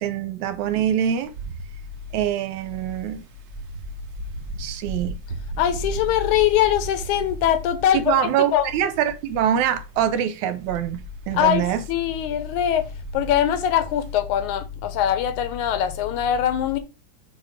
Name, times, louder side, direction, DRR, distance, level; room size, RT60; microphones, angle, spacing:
voice 1, 0.0-1.3 2.1-3.2 4.6-5.2 7.9-11.8, right 9 dB, 80° right, 2.1 m, -24 dB
Wind, 1.0-14.1, right 4 dB, 60° right, 1.2 m, -38 dB
voice 2, 5.6-8.7 11.3-12.9 13.1-16.8, left 10 dB, 90° left, 2.3 m, -22 dB
5.6 x 4.2 x 4.9 m
omnidirectional pair, 3.4 m